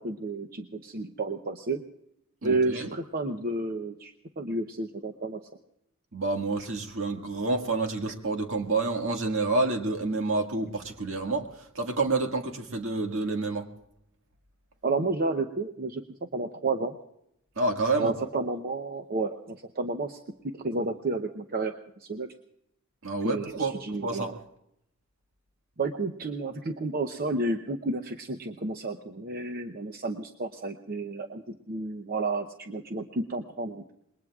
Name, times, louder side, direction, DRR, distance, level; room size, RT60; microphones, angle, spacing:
voice 1, 0.0-1.8 2.4-5.4 14.8-16.0 16.3-17.0 18.0-20.2 20.5-21.7 22.0-22.3 23.2-24.4 25.8-33.9, right 2 dB, 45° right, 5 dB, 0.8 m, -31 dB
voice 2, 2.4-2.9 6.1-11.5 11.8-13.7 17.6-18.1 23.0-23.7 24.0-24.4, right 3 dB, 65° right, 4 dB, 1.9 m, -28 dB
27.0 x 21.5 x 2.4 m, 0.79 s
head